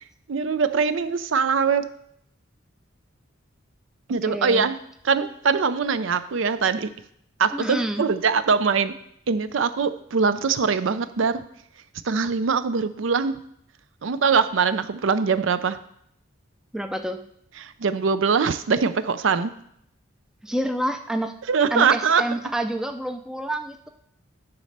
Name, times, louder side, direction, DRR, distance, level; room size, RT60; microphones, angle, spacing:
voice 1, 0.3-1.9 4.1-4.8 5.0-6.9 7.4-8.9 9.3-11.4 12.0-13.3 14.0-15.8 17.6-19.5 21.5-22.2, right 5 dB, 70° right, 13 dB, 0.5 m, -22 dB
voice 2, 4.3-4.6 7.5-8.0 16.7-17.2 20.4-21.4 21.7-23.9, right 1 dB, 5° right, 7 dB, 0.4 m, -28 dB
9.7 x 4.2 x 6.5 m, 0.70 s
head